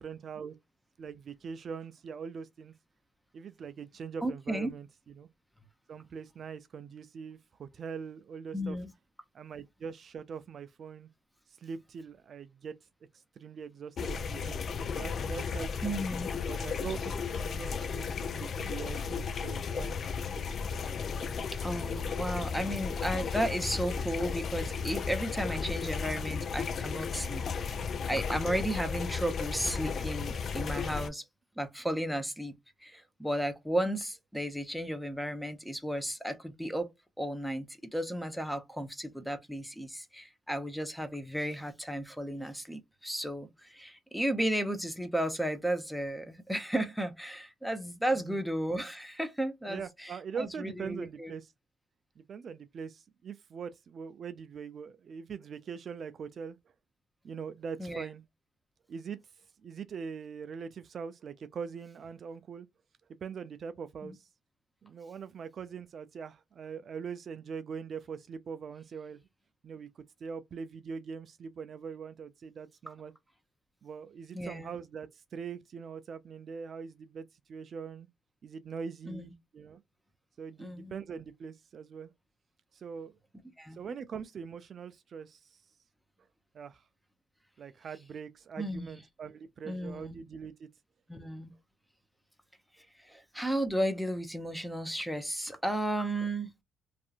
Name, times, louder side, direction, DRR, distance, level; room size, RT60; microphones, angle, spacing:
voice 1, 0.0-0.5 1.0-2.7 3.3-5.3 5.9-8.8 9.3-11.1 11.5-12.7 13.1-14.6 14.9-16.1 16.5-20.0 32.9-33.0 48.2-48.4 49.7-51.5 52.2-56.6 57.2-58.2 58.9-59.2 59.6-62.7 63.2-64.3 64.8-69.2 69.6-73.1 73.8-78.1 78.4-79.8 80.4-82.1 82.7-83.2 83.7-85.6 86.5-86.8 87.6-90.7, right 6 dB, 55° right, 0.3 m, -42 dB
voice 2, 4.2-4.7 8.5-8.9 15.8-16.3 21.6-31.2 31.6-32.5 32.8-36.9 37.2-51.3 57.8-58.1 64.0-64.2 74.3-74.7 79.1-79.3 80.6-80.9 83.6-83.8 88.6-88.9 89.7-90.2 91.1-91.5 93.0-96.5, right 1 dB, ahead, 0.7 m, -34 dB
sound 1, 14.0-31.1, left 5 dB, 55° left, 0.4 m, -34 dB
2.7 x 2.4 x 2.4 m
supercardioid pair, 65°, 0 cm